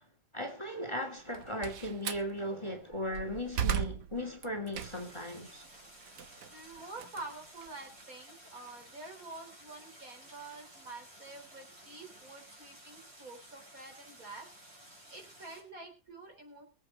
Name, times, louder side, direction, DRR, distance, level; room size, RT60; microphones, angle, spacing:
voice 1, 0.3-5.6, left 1 dB, 15° left, 2.5 m, -37 dB
Slam, 1.2-2.3 2.9-5.2 5.6-8.0, right 9 dB, 85° right, 1.6 m, -37 dB
Stream, 4.7-15.6, right 1 dB, 40° right, 5.4 m, -55 dB
voice 2, 6.5-14.5 15.1-16.6, right 3 dB, 60° right, 4.7 m, -48 dB
23.0 x 8.3 x 4.1 m
omnidirectional pair, 1.7 m